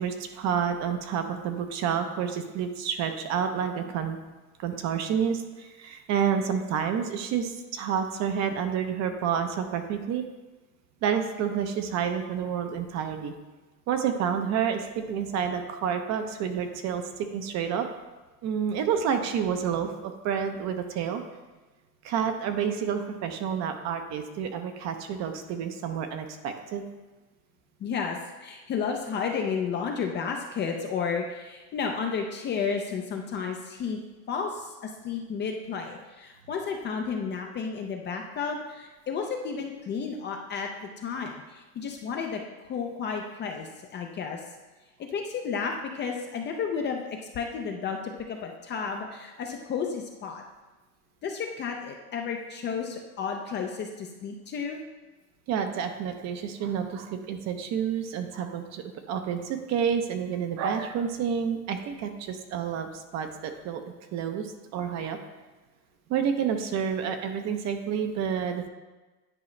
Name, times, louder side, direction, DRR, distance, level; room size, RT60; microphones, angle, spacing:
voice 1, 0.0-4.2 4.6-10.2 11.0-13.3 13.9-17.9 18.4-21.2 22.0-26.8 55.5-63.8 64.1-65.2 66.1-68.7, right 7 dB, 35° right, 6 dB, 0.7 m, -29 dB
voice 2, 27.8-34.0 34.3-40.7 41.0-42.4 42.7-44.4 45.1-47.0 47.3-50.4 51.2-54.8, left 6 dB, 25° left, 2 dB, 0.5 m, -32 dB
9.7 x 4.8 x 3.2 m, 1.2 s
supercardioid pair, 125°, 45 cm